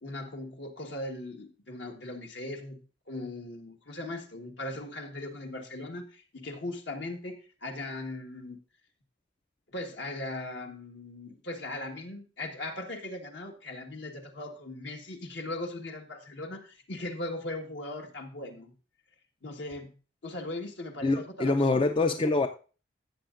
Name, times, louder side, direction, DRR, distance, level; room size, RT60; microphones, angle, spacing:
voice 1, 0.0-8.6 9.7-18.7 19.4-20.0 20.2-22.0, left 2 dB, 65° left, 3 dB, 1.5 m, -39 dB
voice 2, 21.0-22.5, left 3 dB, 25° left, 7 dB, 0.4 m, -25 dB
13.0 x 7.6 x 2.5 m, 0.35 s
head